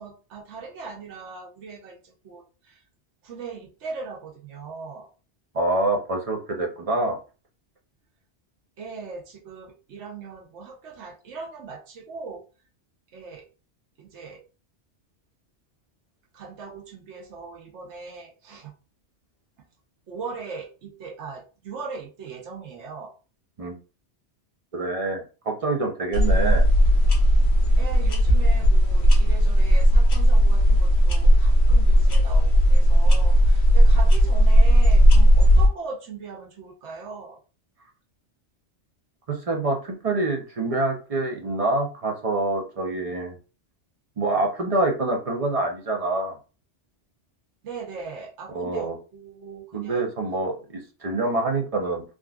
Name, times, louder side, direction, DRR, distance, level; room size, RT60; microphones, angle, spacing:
voice 1, 0.0-2.8 3.2-5.1 8.8-12.4 13.1-13.5 14.0-14.4 16.3-18.7 20.1-23.1 27.8-37.4 47.6-50.1, right 4 dB, 85° right, 0 dB, 1.0 m, -39 dB
voice 2, 5.5-7.2 23.6-23.8 24.7-26.6 39.3-43.4 44.2-46.4 48.5-49.0 49.7-52.0, right 2 dB, 45° right, 1 dB, 0.5 m, -26 dB
sound 1, 26.1-35.7, equal, 70° left, 1.0 m, -16 dB
3.6 x 2.4 x 2.3 m, 0.34 s
omnidirectional pair, 1.2 m